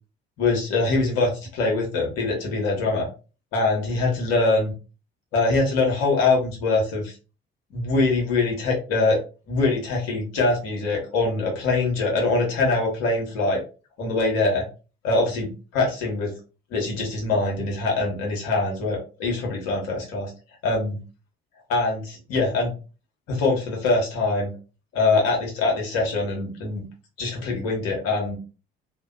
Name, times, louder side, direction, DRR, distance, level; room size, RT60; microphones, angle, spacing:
voice 1, 0.4-3.1 3.5-4.7 5.3-7.1 7.7-9.2 9.5-13.6 14.0-14.6 15.0-16.3 16.7-20.3 20.6-21.0 21.7-22.7 23.3-24.5 24.9-26.9 27.2-28.4, left 3 dB, 60° left, -1 dB, 1.1 m, -23 dB
2.7 x 2.2 x 2.4 m, 0.33 s
figure-of-eight pair, 45°, 29 cm